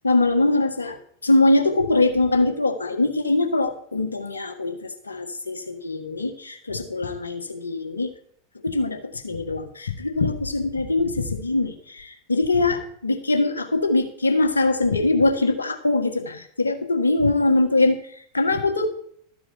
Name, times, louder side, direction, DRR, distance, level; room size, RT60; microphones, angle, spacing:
voice 1, 0.0-1.0 1.2-8.1 8.6-18.0 18.3-18.9, left 2 dB, 90° left, 4 dB, 1.5 m, -22 dB
13.0 x 4.8 x 7.8 m, 0.62 s
figure-of-eight pair, 90°, 0 cm